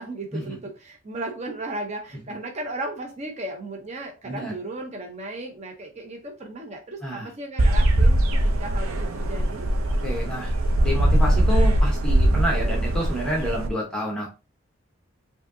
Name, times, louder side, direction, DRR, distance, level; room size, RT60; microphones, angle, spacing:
voice 1, 0.0-9.7, right 2 dB, 30° right, 2 dB, 0.6 m, -35 dB
sound 1, 7.6-13.7, right 1 dB, 85° right, 0.6 m, -21 dB
voice 2, 10.0-14.3, equal, 5° left, -2 dB, 0.8 m, -29 dB
5.0 x 2.7 x 2.6 m, 0.30 s
head